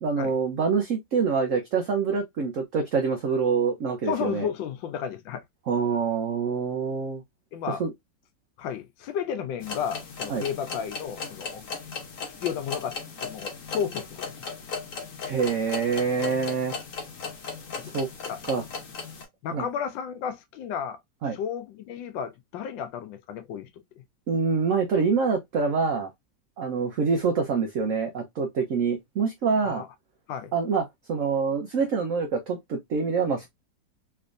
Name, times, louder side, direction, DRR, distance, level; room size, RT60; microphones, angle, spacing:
voice 1, 0.0-4.5 5.7-7.2 7.8-7.9 10.3-10.4 15.2-16.8 17.8-18.1 18.5-18.6 19.5-19.6 21.2-21.4 24.3-26.1 26.6-29.8 30.5-33.5, right 5 dB, 65° right, 0.8 m, -26 dB
voice 2, 4.1-5.4 7.5-7.8 8.6-11.6 12.4-14.3 17.9-18.0 18.3-18.4 19.4-21.0 21.3-23.7 24.0-24.1 29.6-29.9 30.3-30.5, left 8 dB, 75° left, 1.3 m, -32 dB
sound 1, 9.6-19.2, left 5 dB, 50° left, 1.1 m, -37 dB
3.4 x 3.3 x 2.5 m
omnidirectional pair, 2.1 m